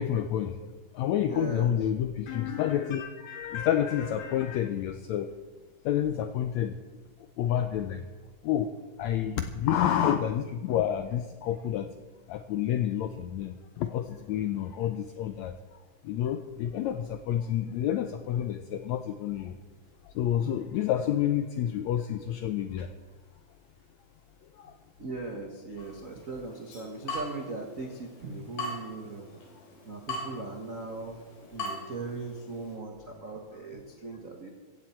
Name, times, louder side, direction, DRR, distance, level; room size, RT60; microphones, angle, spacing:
voice 1, 0.0-5.3 5.8-6.8 7.4-8.0 8.4-8.7 9.0-11.9 12.3-15.8 16.0-19.5 20.0-22.9 24.5-24.7, left 10 dB, 90° left, 8 dB, 1.6 m, -29 dB
voice 2, 1.2-1.8 25.0-29.3 29.8-31.2 31.5-34.5, right 3 dB, 75° right, 2 dB, 0.7 m, -39 dB
Water tap faucet / Drip, 25.8-32.7, left 1 dB, 75° left, 5.4 m, -41 dB
16.0 x 15.5 x 4.4 m, 1.3 s
omnidirectional pair, 3.9 m